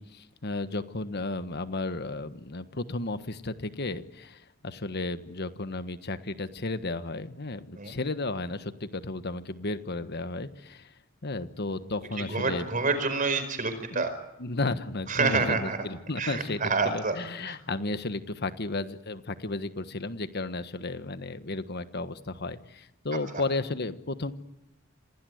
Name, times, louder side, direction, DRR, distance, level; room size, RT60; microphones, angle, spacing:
voice 1, 0.0-10.9 11.2-12.7 13.9-14.1 14.4-24.3, left 2 dB, 55° left, 11 dB, 1.4 m, -33 dB
voice 2, 12.3-14.1 15.1-15.8 16.2-17.1 17.5-17.6, right 4 dB, 40° right, 9 dB, 4.8 m, -27 dB
27.0 x 18.5 x 9.4 m, 0.91 s
head